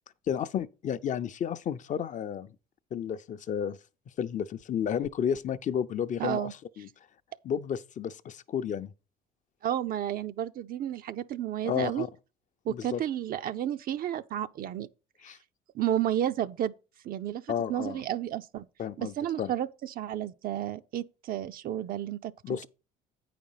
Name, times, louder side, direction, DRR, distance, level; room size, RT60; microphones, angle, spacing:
voice 1, 0.3-2.5 2.9-3.8 4.2-6.9 7.4-8.9 11.6-12.1 12.7-13.0 15.2-15.4 17.5-18.0 18.8-19.5 22.4-22.7, left 8 dB, 45° left, 0.6 m, -32 dB
voice 2, 6.2-6.5 9.6-12.0 12.7-14.9 15.7-16.7 17.0-18.7 19.0-22.7, right 11 dB, 55° right, 0.5 m, -32 dB
8.6 x 5.1 x 5.6 m
cardioid pair, 100°, 18 cm